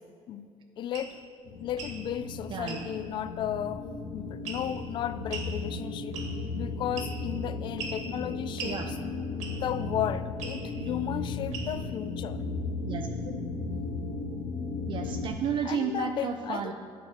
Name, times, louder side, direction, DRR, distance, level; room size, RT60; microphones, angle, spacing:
voice 1, 0.8-1.2 1.6-3.8 4.1-6.2 6.5-9.2 9.5-12.4 15.6-16.7, left 10 dB, 45° left, 14 dB, 0.4 m, -34 dB
sound 1, 0.9-1.1 1.7-2.0 2.7-2.8 4.5-4.8 5.3-5.5 6.1-6.5 7.0-7.3 7.8-8.0 8.6-8.8 9.4-9.7 10.4-10.6 11.5-11.9, right 5 dB, 80° right, 1.8 m, -39 dB
sound 2, 1.5-15.3, left 3 dB, 80° left, 1.4 m, -35 dB
voice 2, 2.5-2.9 8.6-8.9 9.2-9.4 10.8-10.9 12.8-13.3 14.9-16.7, right 6 dB, 45° right, 4 dB, 0.5 m, -33 dB
11.0 x 4.8 x 7.9 m, 2.2 s
cardioid pair, 170°, 12 cm